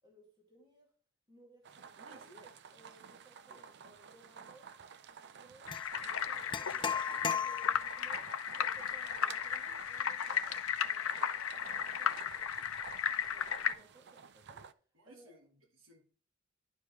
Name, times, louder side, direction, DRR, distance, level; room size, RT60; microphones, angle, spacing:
voice 1, 0.0-0.9 1.3-2.2 2.7-12.2 13.3-15.3, right 2 dB, 20° right, 2.3 m, -62 dB
sound 1, 1.6-14.7, right 6 dB, 55° right, 0.5 m, -52 dB
voice 2, 2.0-2.6 3.5-3.7 14.9-16.0, right 1 dB, 75° right, 1.5 m, -59 dB
sound 2, 5.7-13.7, left 8 dB, 80° left, 0.6 m, -35 dB
sound 3, 5.7-5.9 6.5-8.0, left 6 dB, 25° left, 0.5 m, -36 dB
11.0 x 4.8 x 3.2 m
head